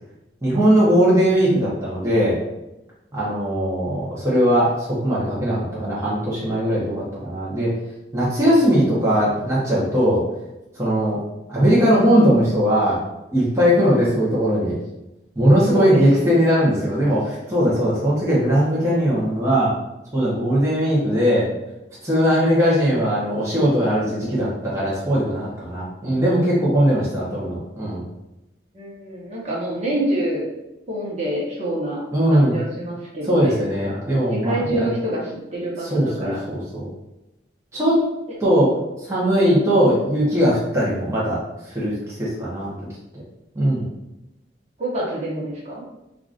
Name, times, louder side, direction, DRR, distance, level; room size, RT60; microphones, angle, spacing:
voice 1, 0.4-2.4 3.1-7.7 8.1-10.2 10.8-11.2 11.5-13.0 13.3-14.7 15.3-19.7 20.1-21.5 22.0-28.0 32.1-32.6 33.3-34.9 35.8-36.9 37.7-38.0 38.4-38.7 39.0-42.7 43.5-43.9, equal, 15° right, -8 dB, 0.9 m, -19 dB
voice 2, 15.7-16.5 28.7-30.5 30.9-32.0 32.3-33.6 33.8-34.0 34.3-36.4 44.8-45.8, right 1 dB, 40° right, -6 dB, 1.0 m, -27 dB
4.7 x 2.5 x 2.5 m, 0.96 s
head